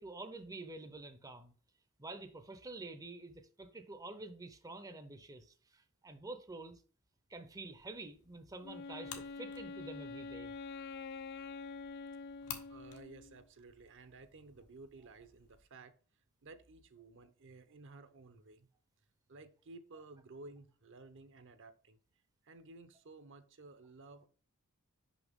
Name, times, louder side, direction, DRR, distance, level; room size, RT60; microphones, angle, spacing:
voice 1, 0.0-1.5 2.0-6.8 7.3-10.5, right 2 dB, 15° right, 0.6 m, -48 dB
sound 1, 7.7-15.6, left 8 dB, 85° left, 1.5 m, -54 dB
Wind instrument woodwind instrument, 8.6-13.4, left 4 dB, 45° left, 0.3 m, -46 dB
voice 2, 12.7-15.9 16.4-18.7 19.3-22.0 22.4-24.3, right 3 dB, 55° right, 0.8 m, -55 dB
6.1 x 5.7 x 3.6 m
head